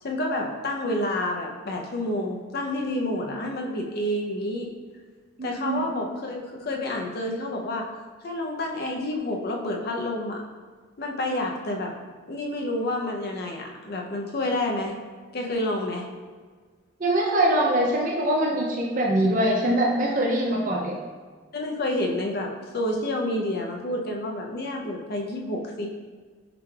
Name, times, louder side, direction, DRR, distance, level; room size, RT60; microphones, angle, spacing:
voice 1, 0.0-4.7 5.4-7.9 8.2-10.4 11.0-11.9 12.3-14.9 15.3-16.1 21.5-25.9, left 1 dB, 50° left, 1 dB, 0.5 m, -29 dB
voice 2, 5.4-5.9 17.0-21.0, right 1 dB, 40° right, -1 dB, 0.4 m, -23 dB
5.8 x 3.3 x 2.3 m, 1.5 s
head